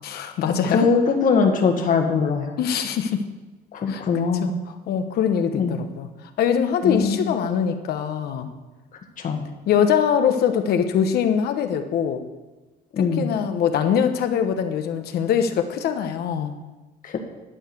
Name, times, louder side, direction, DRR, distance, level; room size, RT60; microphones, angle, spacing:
voice 1, 0.0-0.9 2.6-3.2 3.9-4.0 4.4-6.1 6.4-8.5 9.7-12.2 13.0-16.5, left 8 dB, 70° left, 7 dB, 1.1 m, -23 dB
voice 2, 0.7-2.5 3.7-4.5 5.6-5.8 6.8-7.3 9.2-9.4 12.9-13.3 17.0-17.2, left 5 dB, 50° left, 4 dB, 1.6 m, -21 dB
11.5 x 4.9 x 7.8 m, 1.2 s
cardioid pair, 110°, 17 cm